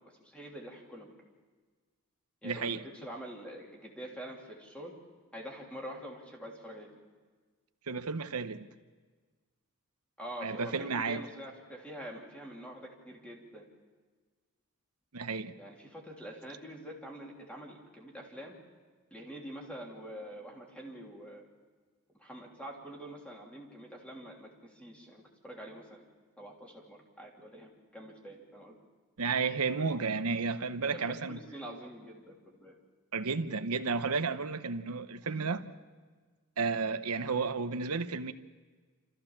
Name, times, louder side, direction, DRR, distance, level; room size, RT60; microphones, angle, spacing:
voice 1, 0.2-1.1 2.4-4.9 5.3-6.9 10.2-13.7 15.6-18.6 19.1-21.4 22.1-26.0 26.4-28.8 30.9-32.8 35.2-35.6 37.3-37.4, equal, 5° left, 3.2 m, -46 dB
voice 2, 2.4-2.8 7.9-8.7 10.4-11.3 15.1-15.5 29.2-31.4 33.1-35.7 36.6-38.3, right 4 dB, 80° right, 1.0 m, -32 dB
27.5 x 14.5 x 7.3 m
head